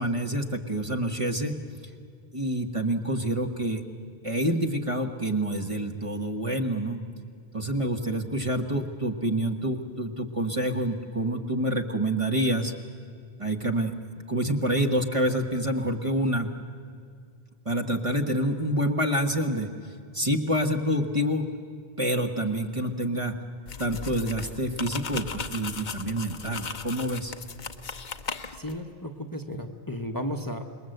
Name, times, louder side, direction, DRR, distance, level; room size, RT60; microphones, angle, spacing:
voice 1, 0.0-1.6 2.3-3.8 4.2-7.0 7.5-12.7 13.4-13.9 14.3-16.5 17.6-19.7 20.1-21.5 22.0-23.3 23.8-27.3, right 1 dB, 30° right, 4 dB, 1.4 m, -27 dB
sound 1, 23.7-28.8, left 5 dB, 50° left, 1.0 m, -37 dB
voice 2, 28.5-30.6, equal, 20° left, 5 dB, 1.1 m, -34 dB
26.5 x 22.0 x 7.9 m, 2.3 s
omnidirectional pair, 1.0 m